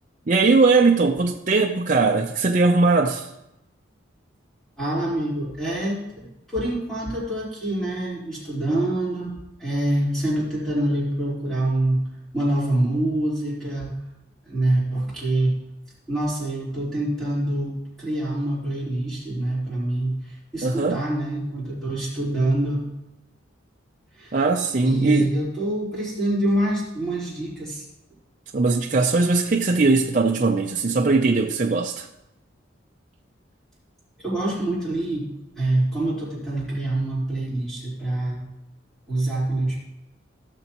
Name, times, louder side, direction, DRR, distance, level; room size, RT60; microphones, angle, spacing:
voice 1, 0.3-3.3 20.6-21.0 24.3-25.3 28.5-32.1, right 3 dB, 40° right, 1 dB, 0.5 m, -20 dB
voice 2, 4.8-9.3 9.6-12.0 12.3-13.9 14.4-15.6 16.1-22.9 24.2-24.4 24.8-27.8 34.2-35.3 35.6-38.4 39.1-39.8, right 1 dB, ahead, -8 dB, 4.3 m, -25 dB
16.5 x 6.8 x 3.0 m, 0.88 s
head